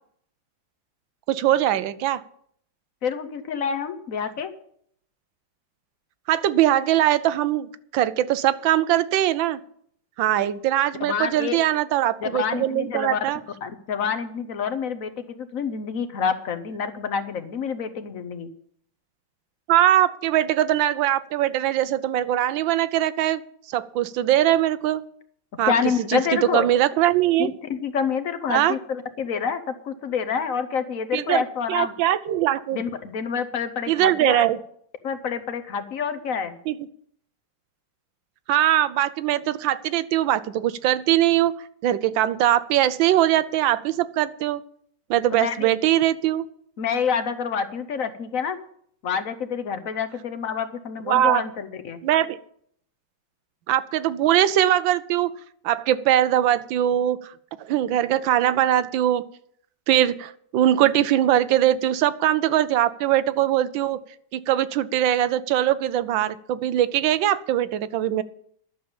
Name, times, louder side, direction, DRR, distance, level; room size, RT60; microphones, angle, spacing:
voice 1, 1.3-2.2 6.3-7.7 7.9-9.6 10.2-13.4 19.7-23.4 23.7-25.0 25.6-25.7 26.1-27.5 28.5-28.8 31.1-31.4 31.7-32.8 33.9-34.6 36.7-36.8 38.5-41.6 41.8-44.6 45.1-46.5 51.1-51.4 52.0-52.4 53.7-55.3 55.6-57.3 57.6-59.2 59.9-64.0 64.3-68.2, right 12 dB, 85° right, 15 dB, 1.4 m, -21 dB
voice 2, 3.0-4.5 11.0-11.6 12.2-13.2 13.6-18.5 25.6-26.7 27.7-31.9 32.7-34.5 35.0-36.6 45.3-45.7 46.8-48.6 49.0-52.0, left 6 dB, 55° left, 10 dB, 1.1 m, -27 dB
11.5 x 6.9 x 8.7 m, 0.66 s
omnidirectional pair, 2.0 m